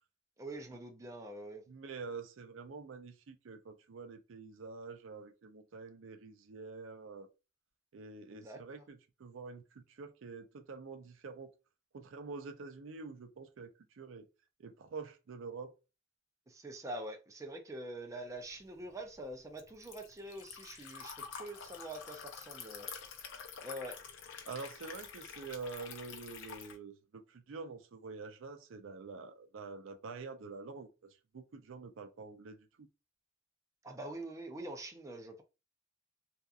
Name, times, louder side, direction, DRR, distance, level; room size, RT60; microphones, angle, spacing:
voice 1, 0.4-1.6 8.3-8.9 16.5-22.9 23.6-24.0 33.8-35.4, right 1 dB, 15° right, 0.4 m, -45 dB
voice 2, 1.7-7.3 7.9-11.5 11.9-14.3 14.6-15.7 24.4-30.9 31.3-32.9, right 4 dB, 75° right, 0.5 m, -47 dB
Liquid, 18.5-26.8, left 6 dB, 65° left, 0.6 m, -48 dB
2.8 x 2.4 x 2.3 m
head